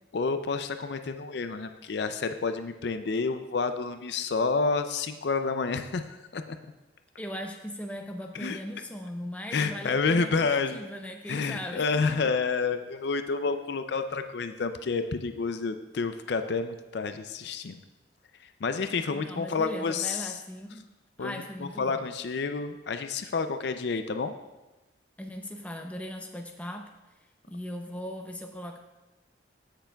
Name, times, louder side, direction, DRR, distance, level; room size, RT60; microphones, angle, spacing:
voice 1, 0.1-6.6 8.3-8.6 9.5-10.8 11.3-17.8 18.4-20.4 21.2-24.3, left 4 dB, 60° left, 9 dB, 0.4 m, -29 dB
voice 2, 7.2-12.2 19.1-20.9 21.2-22.1 25.2-26.9 27.5-28.8, equal, 5° left, 3 dB, 0.5 m, -39 dB
15.0 x 6.7 x 2.3 m, 1.1 s
head